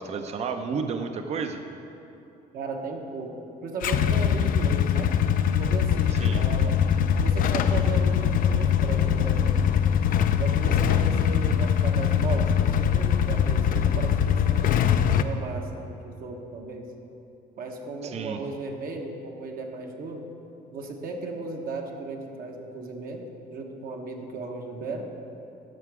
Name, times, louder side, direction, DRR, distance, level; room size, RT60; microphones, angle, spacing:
voice 1, 0.0-1.6 6.1-6.4 18.0-18.4, right 5 dB, 40° right, 7 dB, 0.6 m, -31 dB
voice 2, 2.5-3.3 3.6-5.1 5.6-6.7 7.2-9.6 10.4-14.8 15.2-16.9 17.6-20.3 20.7-25.1, right 3 dB, 60° right, 2 dB, 1.1 m, -36 dB
Motorcycle / Engine starting / Idling, 3.8-15.2, left 8 dB, 55° left, 0.4 m, -22 dB
13.0 x 4.9 x 4.8 m, 2.9 s
cardioid pair, 110°, 17 cm